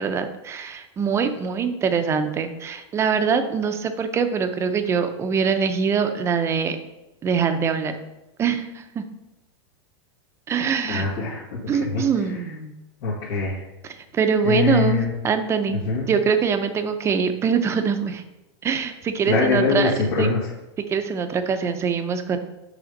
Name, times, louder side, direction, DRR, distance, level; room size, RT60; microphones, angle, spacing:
voice 1, 0.0-6.8 7.2-7.9 8.4-9.0 10.5-11.1 11.7-12.7 13.8-15.8 16.1-18.2 18.6-20.3 20.9-22.4, right 6 dB, 20° right, 8 dB, 0.6 m, -23 dB
voice 2, 10.9-12.0 13.0-13.6 14.4-15.1 15.7-16.1 19.3-20.4, left 4 dB, 75° left, -7 dB, 2.1 m, -23 dB
7.8 x 3.4 x 5.2 m, 0.96 s
supercardioid pair, 150°, 14 cm